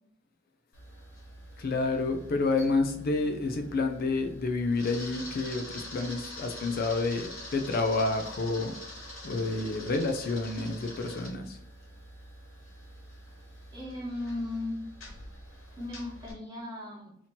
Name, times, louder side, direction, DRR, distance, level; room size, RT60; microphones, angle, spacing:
Camera, 0.7-16.3, left 1 dB, 85° left, 1.4 m, -45 dB
voice 1, 1.6-8.7 9.2-11.6, left 3 dB, 50° left, 5 dB, 0.4 m, -29 dB
voice 2, 13.7-14.8 15.8-17.2, left 2 dB, 20° right, -2 dB, 1.0 m, -36 dB
2.9 x 2.8 x 4.2 m, 0.74 s
head